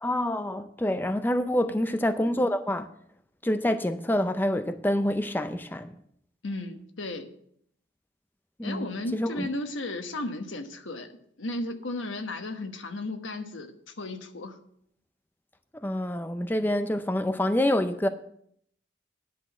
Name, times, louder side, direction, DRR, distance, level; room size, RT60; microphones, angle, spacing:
voice 1, 0.0-2.9 3.4-5.9 8.6-9.5 15.7-18.1, left 1 dB, 10° left, 0.4 m, -27 dB
voice 2, 6.4-7.3 8.6-11.1 11.4-14.6, left 2 dB, 90° left, 1.2 m, -35 dB
10.0 x 5.9 x 7.3 m
head